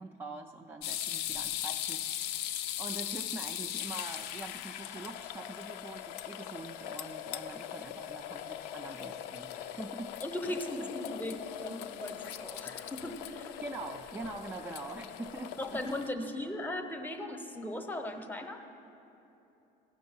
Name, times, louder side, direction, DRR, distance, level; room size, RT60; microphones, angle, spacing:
voice 1, 0.0-10.1 10.5-10.9 13.6-15.8 16.2-16.3, right 2 dB, 15° right, 3 dB, 0.3 m, -44 dB
sound 1, 0.8-16.1, left 11 dB, 80° left, 0.4 m, -40 dB
voice 2, 10.2-13.6 15.6-18.6, left 1 dB, 10° left, 6 dB, 0.7 m, -38 dB
15.5 x 6.1 x 5.5 m, 3.0 s
cardioid pair, 130°, 17 cm